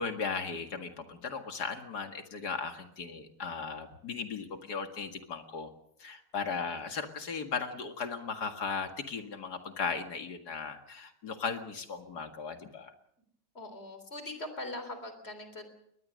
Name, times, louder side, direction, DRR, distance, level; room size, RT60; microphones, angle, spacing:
voice 1, 0.0-5.7 6.0-12.9, left 5 dB, 65° left, 6 dB, 2.4 m, -37 dB
voice 2, 13.5-15.7, left 2 dB, 35° left, 8 dB, 3.8 m, -41 dB
22.0 x 19.5 x 6.5 m, 0.73 s
omnidirectional pair, 1.8 m